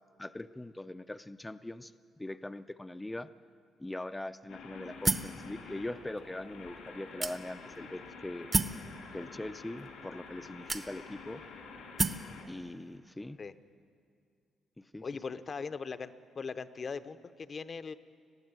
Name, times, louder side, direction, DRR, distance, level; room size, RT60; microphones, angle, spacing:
voice 1, 0.2-1.9 2.2-3.3 3.8-8.5 9.1-11.4 12.5-13.4 14.8-15.1, left 1 dB, 10° left, 10 dB, 0.5 m, -41 dB
sound 1, 4.5-12.4, left 4 dB, 85° left, 3.0 m, -49 dB
sound 2, 5.0-5.4 6.2-6.3 7.2-7.7 8.5-8.8 9.8-9.9 10.7-11.2 12.0-12.3, right 4 dB, 35° right, 0.9 m, -30 dB
voice 2, 15.0-17.9, left 5 dB, 40° left, 12 dB, 0.8 m, -40 dB
20.5 x 14.5 x 9.0 m, 2.3 s
cardioid pair, 90°, 0 cm